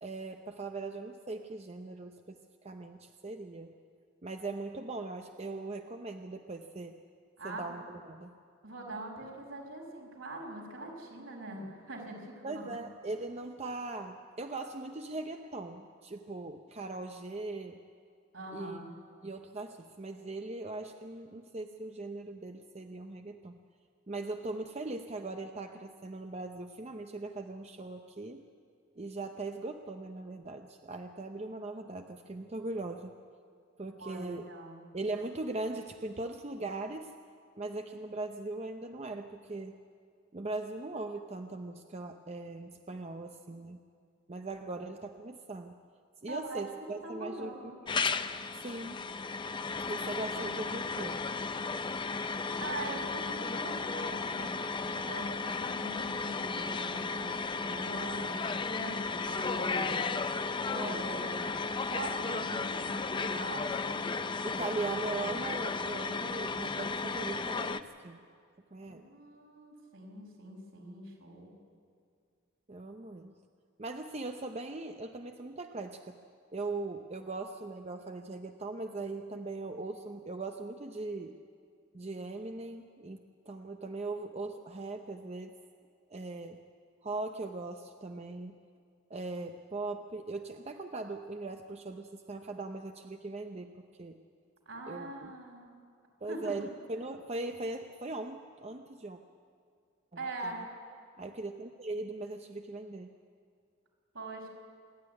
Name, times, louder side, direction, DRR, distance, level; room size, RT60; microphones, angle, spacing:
voice 1, 0.0-3.7 4.2-7.0 7.4-8.3 12.4-17.8 18.5-18.8 19.2-23.6 24.1-28.5 29.0-33.1 33.8-34.4 34.9-37.1 37.6-39.8 40.3-43.8 44.3-45.8 46.2-47.7 48.6-49.1 49.9-51.2 60.7-61.1 64.4-68.2 68.7-69.0 72.7-73.3 73.8-76.2 76.5-81.4 81.9-85.5 86.1-86.6 87.0-88.5 89.1-93.7 94.0-94.2 94.9-95.3 96.2-99.2 100.4-100.5 101.2-103.1, right 2 dB, 30° right, 5 dB, 0.7 m, -40 dB
voice 2, 7.4-7.8 8.6-12.6 18.3-18.9 34.0-34.8 46.3-46.6 47.0-47.8 52.6-54.6 54.9-60.1 60.8-61.6 61.9-64.0 68.9-71.6 94.7-95.7 96.3-96.7 100.2-100.6 104.1-104.5, right 2 dB, 75° right, 0 dB, 5.6 m, -43 dB
sound 1, 47.9-67.8, left 4 dB, 25° left, 0.5 m, -34 dB
26.5 x 11.5 x 9.6 m, 2.2 s
head